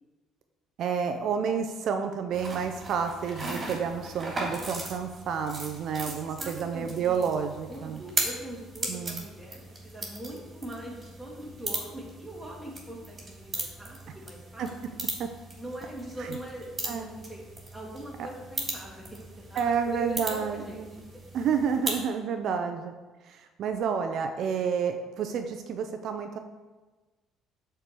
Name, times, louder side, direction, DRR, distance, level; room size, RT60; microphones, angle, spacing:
voice 1, 0.8-8.0 8.9-9.2 14.6-14.7 15.2-15.3 16.8-17.2 19.6-20.9 21.3-22.9 23.2-26.4, right 6 dB, 65° right, 6 dB, 0.6 m, -30 dB
sound 1, 2.3-22.0, right 2 dB, 30° right, 3.0 m, -38 dB
voice 2, 6.1-7.4 7.7-14.7 15.6-17.4 17.7-20.9, right 1 dB, 5° right, -4 dB, 2.7 m, -42 dB
7.9 x 4.6 x 6.9 m, 1.3 s
cardioid pair, 95°, 0 cm